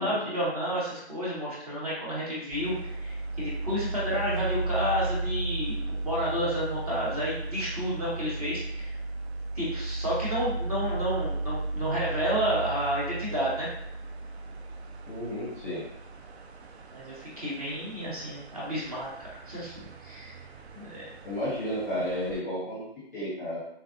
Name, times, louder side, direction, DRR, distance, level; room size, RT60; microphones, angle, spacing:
voice 1, 0.0-8.9 9.5-13.7 16.9-20.4 20.7-21.0, equal, 35° right, -7 dB, 0.9 m, -31 dB
sound 1, 2.5-22.4, right 2 dB, 70° right, 0.5 m, -35 dB
voice 2, 15.1-15.8 21.2-22.8 23.1-23.6, equal, 15° left, -9 dB, 0.7 m, -32 dB
3.4 x 2.4 x 2.5 m, 0.76 s
hypercardioid pair, 165°, 33 cm